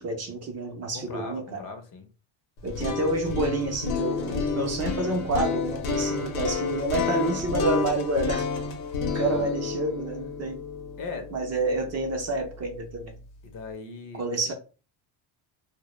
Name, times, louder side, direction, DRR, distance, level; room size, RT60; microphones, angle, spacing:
voice 1, 0.0-1.6 2.6-8.5 9.1-10.6 11.3-13.2 14.2-14.5, right 2 dB, 35° right, 0.5 m, -28 dB
voice 2, 0.9-2.1 9.1-9.5 11.0-11.3 13.4-14.5, left 4 dB, 45° left, 0.6 m, -39 dB
sound 1, 2.6-12.6, left 5 dB, 85° left, 0.8 m, -30 dB
2.1 x 2.1 x 3.0 m
cardioid pair, 105°, 47 cm